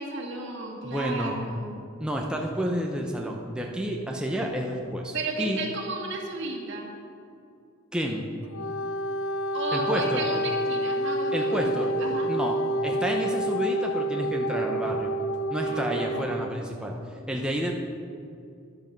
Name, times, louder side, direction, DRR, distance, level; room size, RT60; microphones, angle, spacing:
voice 1, 0.0-1.7 5.1-6.9 9.5-12.3 15.7-17.0, right 2 dB, 60° right, 0 dB, 2.0 m, -34 dB
voice 2, 0.8-1.3 2.0-5.6 7.9-8.3 9.7-10.3 11.3-11.9 12.3-12.6 12.8-15.1 15.5-17.0 17.3-17.7, equal, 5° right, 0 dB, 0.8 m, -29 dB
Wind instrument woodwind instrument, 8.4-16.5, right 1 dB, 70° left, 0.6 m, -28 dB
11.5 x 11.0 x 5.2 m, 2.4 s
head